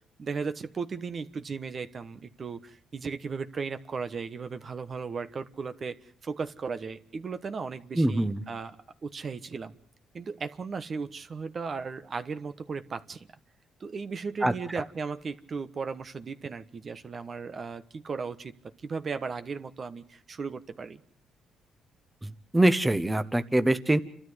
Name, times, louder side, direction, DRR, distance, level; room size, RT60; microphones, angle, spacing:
voice 1, 0.2-6.0 6.2-8.7 9.0-9.8 10.1-13.3 13.8-18.5 18.8-21.0, right 5 dB, 45° right, 10 dB, 1.2 m, -36 dB
voice 2, 8.0-8.4 14.4-14.9 22.2-24.0, right 1 dB, 10° right, 10 dB, 1.1 m, -24 dB
29.5 x 13.0 x 8.0 m, 0.62 s
cardioid pair, 90°, 0 cm